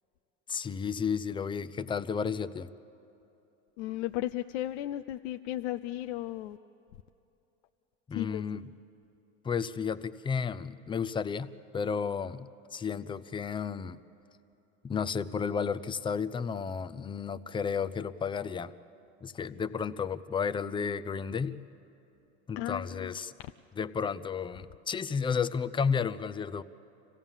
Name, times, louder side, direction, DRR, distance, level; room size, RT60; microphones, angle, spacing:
voice 1, 0.5-2.7 8.1-8.7 9.4-14.0 14.8-18.7 19.2-21.7 22.5-23.3 23.8-26.6, left 6 dB, 15° left, 13 dB, 0.5 m, -32 dB
voice 2, 3.8-6.6 8.1-8.4 22.6-23.2, left 14 dB, 75° left, 9 dB, 0.6 m, -35 dB
26.0 x 16.5 x 7.3 m, 2.9 s
supercardioid pair, 105°, 33 cm